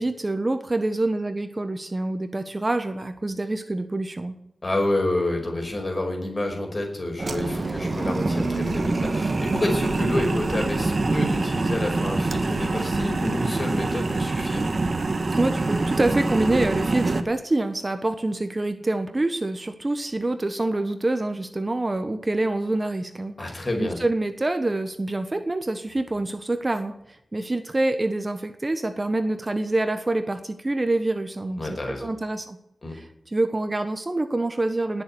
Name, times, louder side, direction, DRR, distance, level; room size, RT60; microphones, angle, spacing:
voice 1, 0.0-4.4 15.3-31.6 32.0-32.6 32.9-35.0, right 2 dB, 30° right, 9 dB, 1.2 m, -26 dB
voice 2, 4.6-14.7 23.4-24.0 31.6-32.1 32.8-32.9, left 1 dB, 35° left, 2 dB, 5.4 m, -28 dB
sound 1, 7.2-17.2, right 3 dB, 45° right, 1.4 m, -25 dB
19.5 x 7.2 x 9.6 m, 0.81 s
wide cardioid pair, 95°, 0 cm